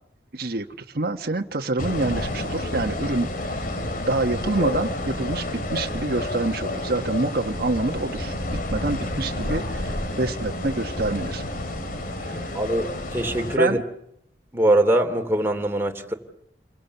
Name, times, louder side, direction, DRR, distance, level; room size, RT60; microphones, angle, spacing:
voice 1, 0.3-3.7 4.1-11.5 12.2-12.5 13.6-13.8, right 2 dB, 55° right, 3 dB, 1.3 m, -27 dB
sound 1, 1.8-13.6, left 1 dB, 50° left, 2.7 m, -30 dB
voice 2, 12.5-12.9 13.1-13.8 14.5-16.1, right 1 dB, 15° right, 4 dB, 2.8 m, -22 dB
30.0 x 23.5 x 7.0 m, 0.74 s
head